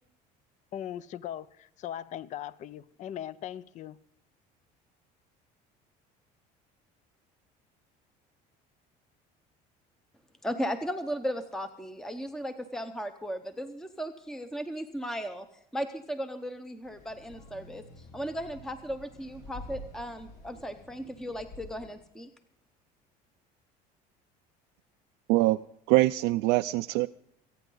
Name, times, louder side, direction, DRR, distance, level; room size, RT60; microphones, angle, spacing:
voice 1, 0.7-4.0, left 10 dB, 45° left, 0.5 m, -39 dB
voice 2, 10.4-15.5 15.7-22.3, equal, 5° left, 0.7 m, -36 dB
sound 1, 16.8-21.9, left 1 dB, 70° left, 5.3 m, -49 dB
voice 3, 25.9-27.1, right 19 dB, 80° right, 0.4 m, -23 dB
26.0 x 9.1 x 3.9 m
cardioid pair, 125°, 18 cm